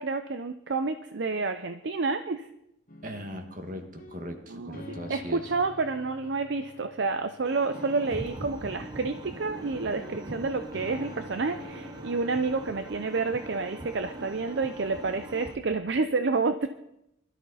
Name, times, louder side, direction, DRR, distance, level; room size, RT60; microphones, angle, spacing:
voice 1, 0.0-2.5 4.5-4.8 5.1-16.7, right 4 dB, 60° right, 9 dB, 0.5 m, -29 dB
sound 1, 2.9-12.5, left 2 dB, 40° left, 1.3 m, -47 dB
voice 2, 3.0-5.5, equal, 40° right, 5 dB, 1.7 m, -39 dB
sound 2, 7.4-15.6, right 2 dB, 20° right, 0.7 m, -44 dB
sound 3, 8.1-15.5, right 1 dB, 90° right, 5.5 m, -44 dB
21.5 x 13.0 x 4.1 m, 0.85 s
head